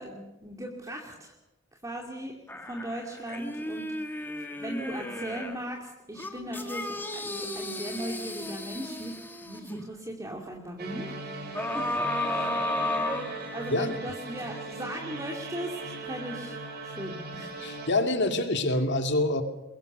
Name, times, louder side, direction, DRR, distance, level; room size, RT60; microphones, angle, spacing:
voice 1, 0.0-1.3 1.8-2.3 2.7-4.3 4.6-11.2 11.7-11.8 12.2-12.6 13.5-16.6 16.8-17.6, right 1 dB, 15° right, 0 dB, 2.5 m, -38 dB
sound 1, 2.5-5.6 6.2-9.8 11.5-13.9 14.4-14.5, left 1 dB, 10° left, 1.9 m, -34 dB
sound 2, 10.8-17.9, right 3 dB, 55° right, 4.6 m, -39 dB
voice 2, 17.6-19.4, left 2 dB, 60° left, 6 dB, 2.4 m, -26 dB
22.5 x 22.0 x 6.8 m, 0.97 s
head